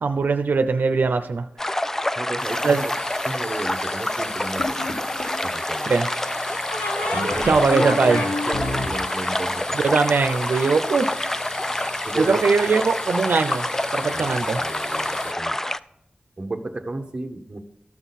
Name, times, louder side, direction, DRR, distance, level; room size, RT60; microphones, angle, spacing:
voice 1, 0.0-1.5 2.6-2.8 5.9-6.1 7.1-8.2 9.8-11.1 12.3-13.7 13.9-14.6, right 4 dB, 85° right, 8 dB, 0.6 m, -21 dB
sound 1, 1.6-15.8, left 1 dB, 15° left, 0.3 m, -27 dB
voice 2, 2.1-3.0 3.2-4.9 5.4-5.9 7.1-9.9 12.0-12.4 14.1-14.3 14.6-15.6 16.4-17.6, right 2 dB, 30° right, 5 dB, 1.0 m, -32 dB
sound 2, 2.4-15.3, left 2 dB, 40° left, 1.0 m, -37 dB
sound 3, 4.6-5.4 6.7-10.4, left 2 dB, 60° left, 1.7 m, -29 dB
13.5 x 6.1 x 4.1 m, 0.82 s
wide cardioid pair, 90°, 3 cm